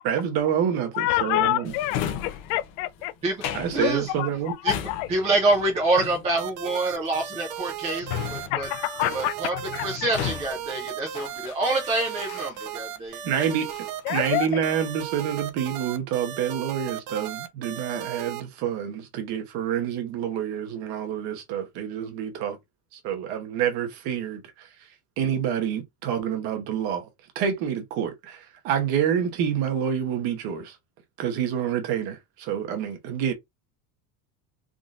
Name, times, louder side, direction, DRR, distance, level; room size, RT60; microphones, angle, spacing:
voice 1, 0.0-1.7 3.5-4.5 13.2-13.7 14.1-22.6 22.9-24.7 25.2-27.1 27.3-30.8 31.2-33.3, right 9 dB, 55° right, 1.0 m, -27 dB
voice 2, 0.9-3.1 3.8-5.1 8.5-9.8 14.1-14.6, left 15 dB, 85° left, 0.6 m, -27 dB
Drawer open or close, 1.6-12.9 13.3-14.6 15.0-15.5, left 9 dB, 45° left, 0.6 m, -37 dB
voice 3, 3.7-4.1 4.6-4.7 5.1-8.7 9.1-9.5 9.8-13.2, right 2 dB, 15° right, 0.4 m, -26 dB
sound 1, 6.4-18.4, right 10 dB, 80° right, 0.8 m, -36 dB
3.7 x 2.6 x 2.4 m
cardioid pair, 170°, 46 cm